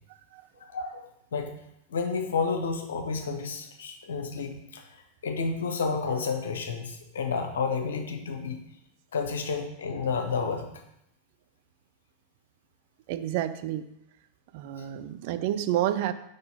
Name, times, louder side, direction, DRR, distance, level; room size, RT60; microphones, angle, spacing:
voice 1, 0.6-1.5 1.9-8.6 9.1-10.7 14.8-14.9, left 5 dB, 65° left, 4 dB, 0.9 m, -31 dB
voice 2, 13.1-13.9 14.5-16.1, right 12 dB, 50° right, 11 dB, 0.4 m, -29 dB
5.1 x 3.9 x 5.7 m, 0.81 s
figure-of-eight pair, 90°, 0 cm